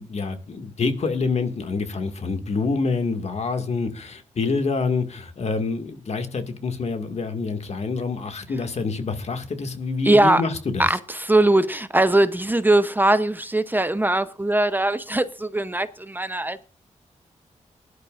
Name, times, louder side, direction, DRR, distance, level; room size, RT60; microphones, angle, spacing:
voice 1, 0.0-10.9, left 4 dB, 55° left, 2.1 m, -27 dB
voice 2, 10.0-10.4 10.8-16.6, right 1 dB, 15° right, 0.8 m, -20 dB
20.5 x 11.0 x 2.5 m
wide cardioid pair, 95°, 13 cm